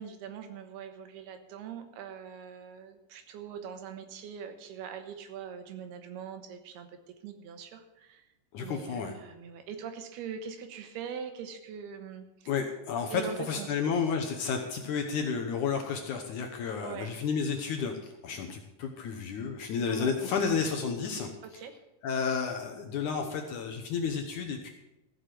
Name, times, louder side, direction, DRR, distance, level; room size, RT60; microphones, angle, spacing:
voice 1, 0.0-7.0 7.2-8.2 8.6-12.5 13.1-13.7 16.8-17.1 19.9-20.1 21.4-21.7, right 7 dB, 85° right, 7 dB, 3.2 m, -42 dB
voice 2, 8.5-9.2 12.5-21.3 22.0-24.7, left 6 dB, 70° left, 3 dB, 2.0 m, -31 dB
15.0 x 6.6 x 7.6 m, 0.93 s
omnidirectional pair, 4.5 m